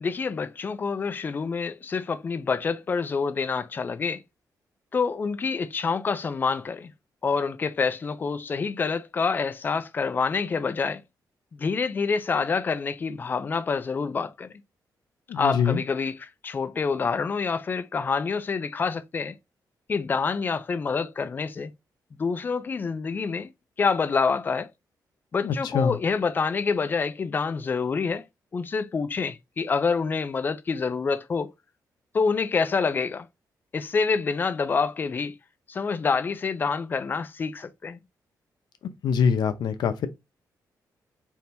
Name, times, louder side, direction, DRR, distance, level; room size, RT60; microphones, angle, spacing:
voice 1, 0.0-4.2 4.9-6.9 7.2-11.0 11.6-14.5 15.3-19.4 19.9-21.7 22.2-23.5 23.8-24.7 25.3-28.3 28.5-31.5 32.1-33.3 33.7-35.4 35.7-38.0, left 5 dB, 25° left, 0.4 m, -27 dB
voice 2, 15.3-15.8 25.4-26.0 39.0-40.1, left 6 dB, 85° left, 0.7 m, -24 dB
4.3 x 3.5 x 2.5 m
wide cardioid pair, 170°, 7 cm